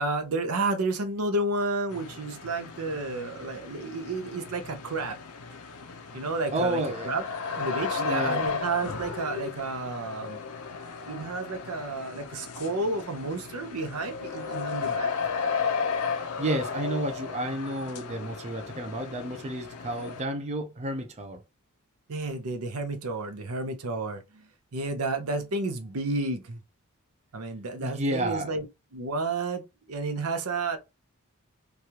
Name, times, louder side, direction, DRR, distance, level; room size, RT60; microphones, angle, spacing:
voice 1, 0.0-5.2 6.1-7.2 7.5-10.4 11.1-15.1 22.1-26.6 27.3-28.6 28.9-30.8, right 2 dB, 80° right, 0.7 m, -31 dB
sound 1, 1.9-20.2, left 5 dB, 85° left, 0.6 m, -34 dB
voice 2, 6.5-7.1 8.0-8.4 16.4-21.4 27.8-28.5, right 1 dB, 30° right, 0.4 m, -31 dB
3.1 x 2.4 x 2.8 m
head